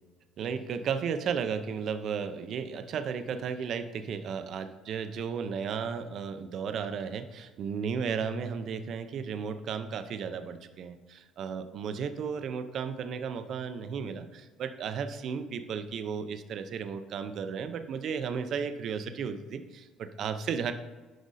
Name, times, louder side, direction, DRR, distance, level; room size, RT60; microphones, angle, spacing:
voice 1, 0.4-20.7, right 6 dB, 45° right, 9 dB, 0.6 m, -34 dB
11.0 x 5.1 x 4.1 m, 1.3 s
cardioid pair, 175°, 0 cm